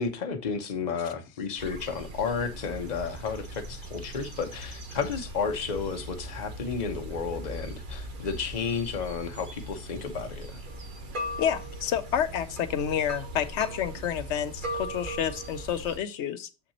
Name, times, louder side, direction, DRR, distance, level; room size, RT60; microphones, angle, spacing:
voice 1, 0.0-10.6, left 5 dB, 40° left, 1.0 m, -32 dB
sound 1, 1.6-16.0, equal, 50° right, 1.2 m, -39 dB
voice 2, 11.4-16.5, left 9 dB, 85° left, 1.0 m, -29 dB
7.2 x 5.9 x 2.8 m
omnidirectional pair, 1.2 m